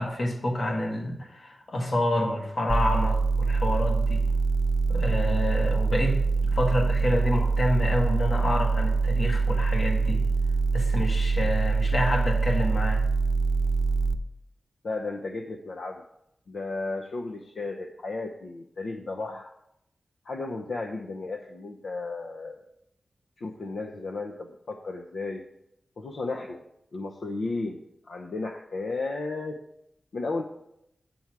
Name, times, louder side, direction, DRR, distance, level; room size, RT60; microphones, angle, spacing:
voice 1, 0.0-4.2 4.9-10.2 10.7-13.1, left 1 dB, 55° left, 2 dB, 1.7 m, -28 dB
sound 1, 2.7-14.1, right 4 dB, 15° right, 0.7 m, -24 dB
voice 2, 14.8-16.0 16.5-19.5 20.3-22.6 23.4-25.4 26.0-26.6 26.9-27.8 28.1-29.6 30.1-30.4, left 3 dB, 75° left, 2 dB, 0.6 m, -34 dB
8.8 x 7.0 x 4.7 m, 0.81 s
wide cardioid pair, 115°, 0 cm